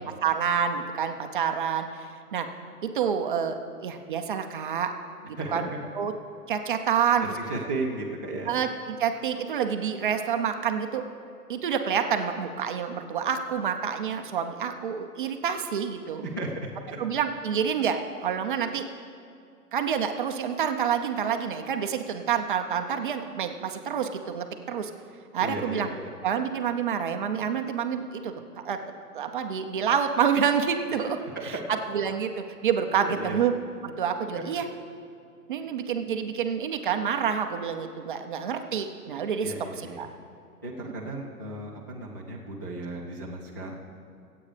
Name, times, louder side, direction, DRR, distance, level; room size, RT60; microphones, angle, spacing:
voice 1, 0.0-2.5 2.8-4.9 5.2-5.7 6.0-6.1 6.5-7.3 8.5-11.0 11.5-16.2 17.0-18.8 19.7-24.9 25.3-25.9 26.2-28.3 28.6-28.8 29.1-31.2 31.4-31.5 31.9-32.3 32.6-33.5 33.8-34.6 35.5-39.5 40.0-40.1, right 7 dB, 35° right, 6 dB, 0.6 m, -28 dB
voice 2, 5.4-5.8 7.4-8.5 16.2-17.0 25.4-26.1 31.2-31.4 33.0-33.4 34.4-34.5 39.4-40.0 40.6-43.7, right 2 dB, 15° left, -8 dB, 0.4 m, -35 dB
23.5 x 8.6 x 3.3 m, 2.4 s
hypercardioid pair, 145°, 47 cm